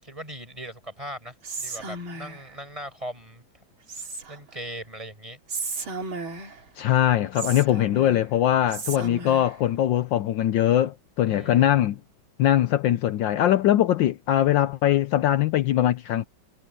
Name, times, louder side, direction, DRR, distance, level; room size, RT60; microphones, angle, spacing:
voice 1, 0.0-3.4 4.3-5.4 11.3-11.8, equal, 15° right, 6.4 m, -39 dB
Whispering, 1.4-2.5 3.9-4.6 5.5-6.7 7.4-8.3 8.7-9.6, right 3 dB, 75° right, 3.8 m, -35 dB
voice 2, 6.8-12.0 12.4-16.2, left 12 dB, 70° left, 1.3 m, -21 dB
omnidirectional pair, 2.3 m